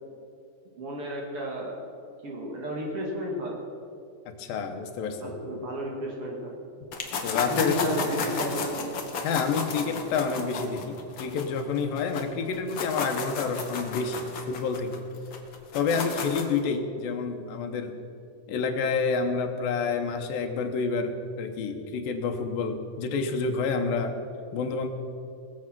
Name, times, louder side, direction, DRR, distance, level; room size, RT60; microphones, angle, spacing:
voice 1, 0.7-1.8 2.2-3.6 5.2-6.6 7.3-8.9, equal, 45° right, -1 dB, 2.6 m, -32 dB
voice 2, 4.3-5.3 7.2-7.8 9.2-15.0 15.7-18.0 18.5-24.2 24.5-24.9, left 5 dB, 85° left, 5 dB, 2.8 m, -29 dB
sound 1, 6.9-12.2 12.5-16.6, left 4 dB, 60° left, 1.3 m, -33 dB
20.5 x 7.5 x 6.1 m, 2.5 s
omnidirectional pair, 4.0 m